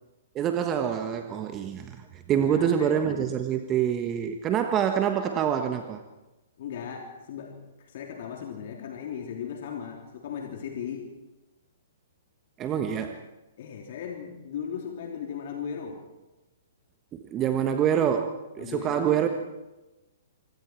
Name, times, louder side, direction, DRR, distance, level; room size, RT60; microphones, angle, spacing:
voice 1, 0.3-6.0 12.6-13.2 17.1-19.3, right 9 dB, 25° right, 6 dB, 1.3 m, -26 dB
voice 2, 2.3-2.9 6.6-11.1 13.6-16.0 18.6-19.3, left 7 dB, 50° left, 1 dB, 3.3 m, -37 dB
26.5 x 24.5 x 4.6 m, 1.1 s
figure-of-eight pair, 115°, 0 cm